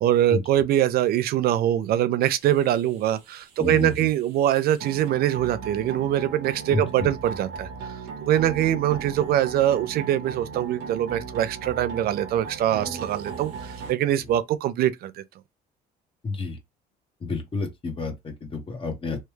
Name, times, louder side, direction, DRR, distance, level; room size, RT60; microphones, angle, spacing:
voice 1, 0.0-7.7 8.2-15.2, right 12 dB, 65° right, 0.5 m, -23 dB
sound 1, 2.2-13.9, right 5 dB, 90° right, 1.0 m, -37 dB
voice 2, 3.6-3.9 6.7-7.1 14.2-14.3 16.2-16.6 17.2-19.2, left 4 dB, 30° left, 1.1 m, -30 dB
3.2 x 2.3 x 3.1 m
cardioid pair, 110°, 17 cm